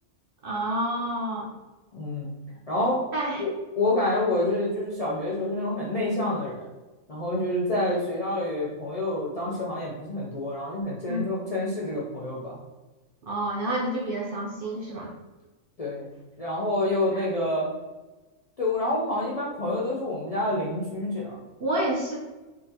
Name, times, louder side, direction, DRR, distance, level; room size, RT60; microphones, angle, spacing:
voice 1, 0.4-1.5 3.1-3.4 11.1-11.3 13.3-15.1 17.1-17.3 21.6-22.2, right 1 dB, 60° right, -2 dB, 0.6 m, -29 dB
voice 2, 1.9-2.3 2.7-3.0 3.4-6.7 7.1-12.6 15.8-16.1 16.4-17.7 18.6-21.4, left 1 dB, 50° left, -6 dB, 0.4 m, -28 dB
3.7 x 2.4 x 2.8 m, 1.2 s
omnidirectional pair, 1.4 m